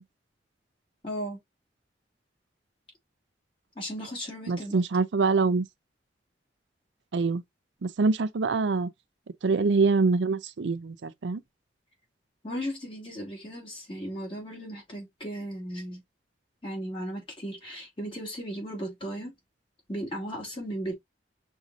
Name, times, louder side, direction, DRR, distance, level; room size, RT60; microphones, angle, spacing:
voice 1, 1.0-1.4 3.8-4.8 12.4-16.0 16.6-19.3 19.9-20.9, equal, 30° left, 2.7 m, -36 dB
voice 2, 4.5-5.7 7.1-7.4 7.8-8.9 9.4-11.4, right 4 dB, 80° right, 0.5 m, -25 dB
6.1 x 2.7 x 2.6 m
head